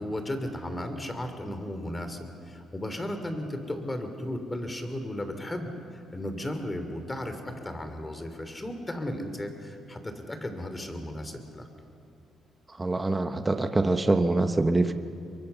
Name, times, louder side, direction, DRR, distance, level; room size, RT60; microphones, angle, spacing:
voice 1, 0.0-5.7 6.1-11.7, left 1 dB, 20° left, 7 dB, 3.0 m, -35 dB
voice 2, 12.7-14.9, right 2 dB, 20° right, 8 dB, 1.1 m, -24 dB
23.5 x 23.5 x 7.0 m, 2.5 s
cardioid pair, 90°, 0 cm